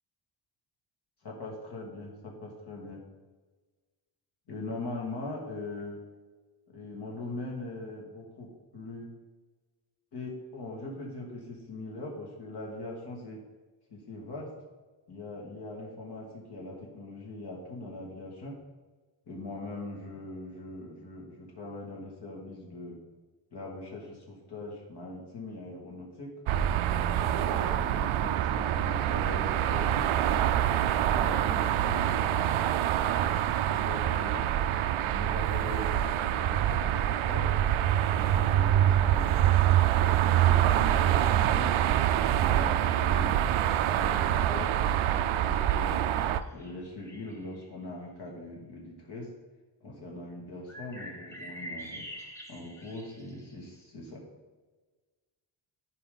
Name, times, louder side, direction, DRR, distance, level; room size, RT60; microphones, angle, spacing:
voice 1, 1.2-3.0 4.5-6.0 6.7-9.1 10.1-13.4 13.9-14.5 15.1-18.6 19.3-23.0 23.5-26.3 27.2-30.6 31.1-32.5 33.6-34.5 35.1-37.6 38.1-39.4 40.1-41.7 42.3-43.5 43.9-46.0 46.5-49.3 49.8-54.2, left 2 dB, 55° left, -2 dB, 2.4 m, -41 dB
sound 1, 26.5-46.4, right 11 dB, 85° right, 0.6 m, -25 dB
sound 2, 45.7-47.6 50.7-53.6, equal, 5° left, 1.0 m, -45 dB
14.0 x 5.1 x 4.0 m, 1.3 s
wide cardioid pair, 165°, 47 cm